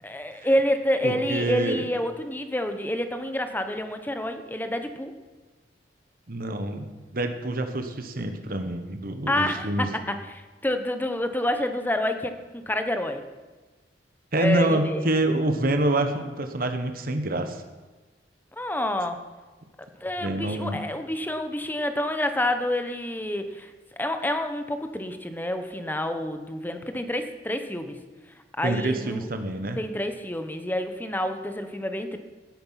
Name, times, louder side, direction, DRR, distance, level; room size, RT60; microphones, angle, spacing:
voice 1, 0.0-5.1 9.3-13.2 14.4-15.1 18.6-19.2 20.0-23.7 24.0-28.0 28.6-29.2 29.8-32.2, left 1 dB, 10° left, 8 dB, 1.0 m, -28 dB
voice 2, 1.0-1.9 6.3-6.9 7.1-9.9 14.3-17.6 20.2-20.8 28.6-29.8, right 1 dB, 50° right, 7 dB, 1.3 m, -26 dB
17.0 x 8.7 x 5.8 m, 1.3 s
head